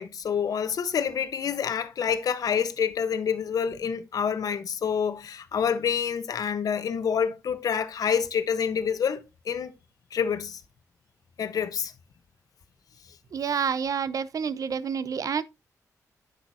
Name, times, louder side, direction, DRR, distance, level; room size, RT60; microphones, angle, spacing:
voice 1, 0.0-9.7 10.1-10.6 11.4-11.9, left 7 dB, 75° left, 1.1 m, -27 dB
voice 2, 13.3-15.4, right 6 dB, 65° right, 0.7 m, -28 dB
10.5 x 7.9 x 2.8 m
cardioid pair, 80°, 6 cm